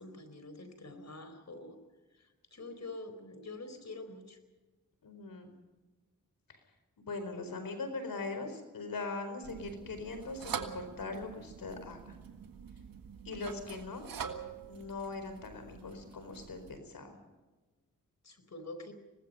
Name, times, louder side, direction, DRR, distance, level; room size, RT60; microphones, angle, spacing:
voice 1, 0.0-1.8 2.2-4.4 18.2-18.9, left 2 dB, 50° left, 9 dB, 4.3 m, -46 dB
voice 2, 5.0-5.5 6.5-6.6 7.0-12.1 13.2-14.0 14.7-17.2, left 3 dB, 80° left, 8 dB, 4.5 m, -41 dB
sound 1, 9.4-16.8, right 7 dB, 85° right, 1.7 m, -45 dB
25.5 x 19.5 x 5.5 m, 1.2 s
cardioid pair, 45°, 34 cm